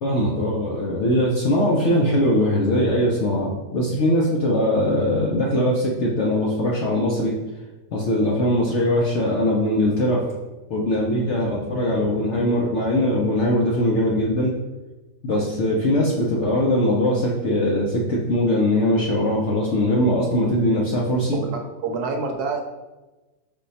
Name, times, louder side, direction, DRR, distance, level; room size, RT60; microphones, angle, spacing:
voice 1, 0.0-7.4 7.9-10.2 10.7-14.5 15.2-21.4, left 1 dB, 65° left, -2 dB, 0.7 m, -21 dB
voice 2, 21.8-22.6, right 4 dB, 70° right, 3 dB, 1.1 m, -26 dB
5.4 x 2.2 x 4.0 m, 1.1 s
omnidirectional pair, 1.8 m